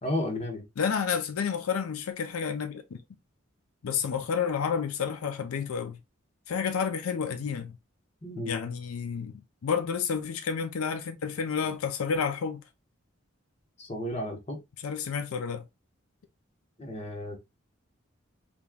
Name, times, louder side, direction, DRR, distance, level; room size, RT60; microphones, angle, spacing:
voice 1, 0.0-0.6 8.2-8.6 13.8-14.6 16.8-17.4, left 1 dB, 30° left, 0.8 m, -33 dB
voice 2, 0.8-3.0 3.8-6.0 6.5-7.7 8.5-12.6 14.8-15.6, left 6 dB, 85° left, 0.5 m, -30 dB
3.5 x 3.0 x 2.2 m
head